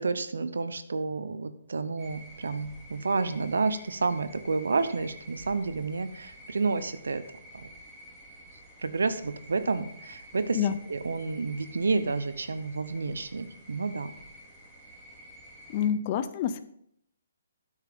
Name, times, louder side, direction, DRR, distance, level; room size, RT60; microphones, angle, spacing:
voice 1, 0.0-7.2 7.6-7.7 8.8-10.6 10.9-14.1, right 4 dB, 80° right, 13 dB, 0.7 m, -30 dB
sound 1, 2.0-15.9, equal, 5° right, 2.3 m, -50 dB
voice 2, 15.7-16.6, left 9 dB, 35° left, 11 dB, 0.5 m, -27 dB
9.5 x 7.3 x 3.6 m, 0.72 s
hypercardioid pair, 145°, 0 cm